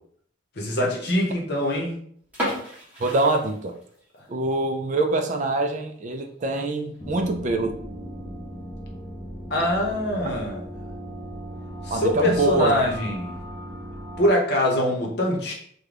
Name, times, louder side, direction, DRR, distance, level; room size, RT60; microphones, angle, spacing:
voice 1, 0.6-2.0 9.5-10.7 11.8-13.4 14.2-15.5, left 1 dB, 55° left, -1 dB, 0.9 m, -23 dB
sound 1, 2.3-4.2 4.5-4.6 5.1-5.3 5.7-5.8 6.1-6.2 6.9-7.3, equal, 10° right, 1.2 m, -33 dB
voice 2, 3.0-3.7 4.3-7.8 11.9-12.8, right 2 dB, 40° right, 5 dB, 0.3 m, -24 dB
sound 2, 7.0-14.3, equal, 25° left, 0.6 m, -37 dB
3.7 x 2.2 x 3.3 m, 0.62 s
head